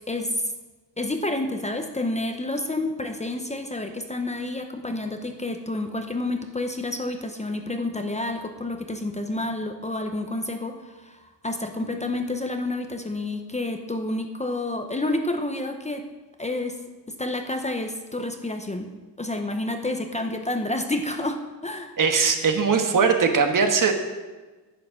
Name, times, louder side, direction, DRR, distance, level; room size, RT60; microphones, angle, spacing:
voice 1, 0.1-0.5 1.0-16.1 16.4-16.8 17.1-18.9 19.2-21.9, left 2 dB, 15° left, 5 dB, 0.8 m, -29 dB
voice 2, 22.0-23.9, right 5 dB, 50° right, 5 dB, 1.4 m, -20 dB
10.0 x 9.2 x 6.3 m, 1.3 s
wide cardioid pair, 140°, 41 cm